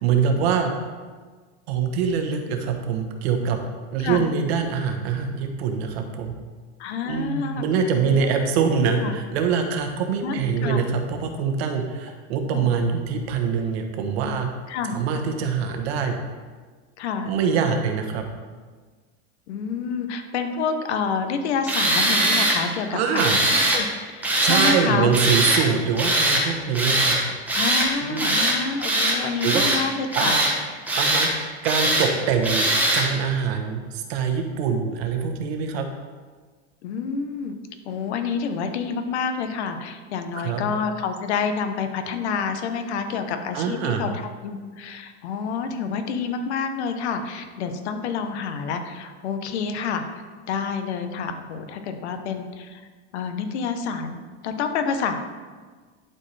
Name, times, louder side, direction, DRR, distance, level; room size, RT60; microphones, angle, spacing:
voice 1, 0.0-0.7 1.7-3.6 3.9-6.3 7.1-14.5 14.9-16.2 17.2-18.2 22.9-23.4 24.4-27.2 28.0-28.4 29.4-29.7 30.1-30.5 31.0-35.9 40.4-40.6 43.5-44.0, right 6 dB, 70° right, 4 dB, 1.1 m, -24 dB
voice 2, 6.8-7.6 8.1-8.3 9.0-9.1 10.2-10.8 12.5-12.7 14.7-15.0 17.0-17.3 19.5-25.1 27.5-30.3 36.8-37.5 37.8-44.1 44.4-50.2 50.5-52.8 53.1-55.2, left 5 dB, 90° left, 7 dB, 1.0 m, -28 dB
Tools, 21.7-22.6 23.1-23.8 24.2-24.8 25.1-25.6 26.0-26.4 26.7-27.2 27.5-27.9 28.2-28.6 28.8-29.8 30.1-30.5 30.9-31.3 31.6-32.1 32.4-33.1, right 1 dB, 5° right, 0.9 m, -21 dB
11.0 x 4.5 x 3.3 m, 1.4 s
supercardioid pair, 160°, 33 cm